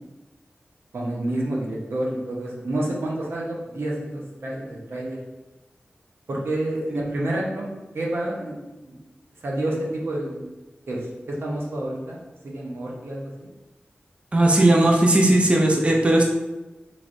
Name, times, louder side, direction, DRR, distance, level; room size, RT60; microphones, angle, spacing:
voice 1, 0.9-5.2 6.3-7.7 7.9-8.6 8.8-9.0 9.4-10.6 10.9-13.5, right 1 dB, 80° right, -3 dB, 0.7 m, -29 dB
voice 2, 14.3-16.2, right 1 dB, 30° right, 0 dB, 0.5 m, -17 dB
3.2 x 2.9 x 2.6 m, 1.1 s
cardioid pair, 45°, 4 cm